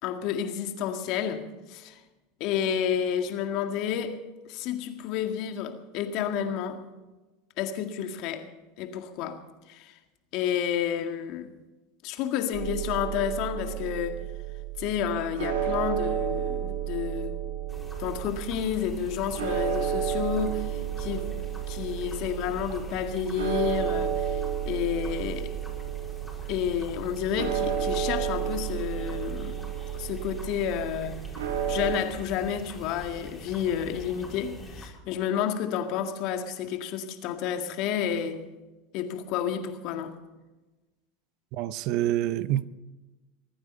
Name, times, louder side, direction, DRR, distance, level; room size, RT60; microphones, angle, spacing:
voice 1, 0.0-2.0 2.4-4.2 4.5-6.8 7.6-8.5 8.8-9.4 9.7-10.0 10.3-11.5 12.0-14.2 14.8-17.4 18.0-25.6 26.5-29.6 30.0-31.2 31.7-38.4 38.9-40.1, left 9 dB, 55° left, 1.9 m, -30 dB
sound 1, 12.5-32.0, right 9 dB, 85° right, 2.5 m, -32 dB
sound 2, 17.7-34.9, left 1 dB, 5° left, 4.7 m, -45 dB
voice 2, 41.5-42.7, right 13 dB, 55° right, 0.7 m, -27 dB
23.0 x 9.6 x 5.5 m
hypercardioid pair, 100°, 0 cm